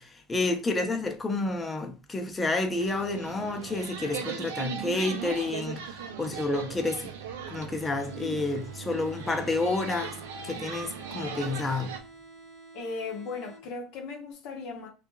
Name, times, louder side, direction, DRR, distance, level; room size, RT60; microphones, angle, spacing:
voice 1, 0.0-7.1 7.5-10.2 10.4-11.9, left 2 dB, 20° left, 0.6 m, -30 dB
sound 1, 2.7-12.0, right 6 dB, 85° right, 0.4 m, -38 dB
sound 2, 8.1-14.0, right 3 dB, 20° right, 0.9 m, -50 dB
voice 2, 12.7-14.9, left 4 dB, 70° left, 0.7 m, -37 dB
2.6 x 2.3 x 2.2 m
supercardioid pair, 95°, 0 cm